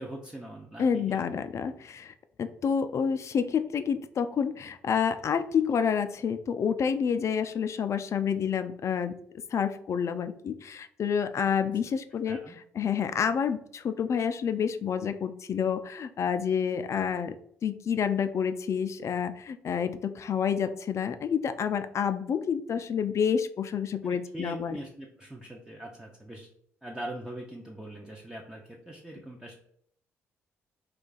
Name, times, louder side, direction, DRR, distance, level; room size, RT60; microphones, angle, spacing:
voice 1, 0.0-1.2 12.3-12.6 24.0-26.5 26.8-29.5, right 1 dB, 10° right, -1 dB, 0.5 m, -42 dB
voice 2, 0.8-9.2 9.5-12.4 12.8-17.4 17.6-24.8, left 7 dB, 45° left, 10 dB, 0.3 m, -29 dB
2.4 x 2.3 x 3.8 m, 0.68 s
hypercardioid pair, 50°, 7 cm